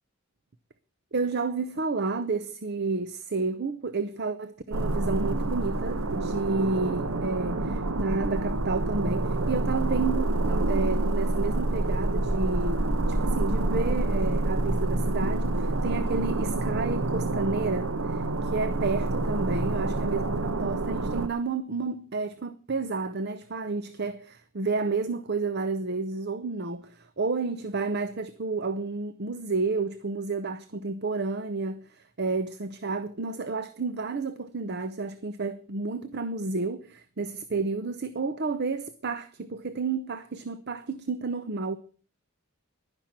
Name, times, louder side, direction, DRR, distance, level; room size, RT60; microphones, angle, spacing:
voice 1, 1.1-41.8, right 3 dB, 50° right, 0.8 m, -31 dB
sound 1, 4.7-21.3, right 2 dB, 80° right, 0.9 m, -27 dB
11.5 x 10.5 x 7.3 m
head